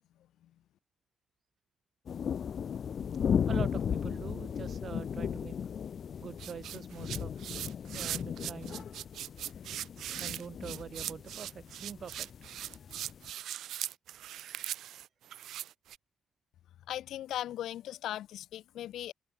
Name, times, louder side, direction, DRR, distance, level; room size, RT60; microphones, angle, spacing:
sound 1, 2.1-13.3, left 7 dB, 45° left, 0.4 m, -36 dB
voice 1, 3.5-5.6 6.2-7.6 7.9-8.9 10.2-12.3, right 7 dB, 40° right, 1.8 m, -44 dB
sound 2, 6.4-16.0, right 12 dB, 80° right, 1.1 m, -40 dB
voice 2, 16.9-19.1, left 12 dB, 80° left, 0.9 m, -38 dB
cardioid pair, 155°, 0 cm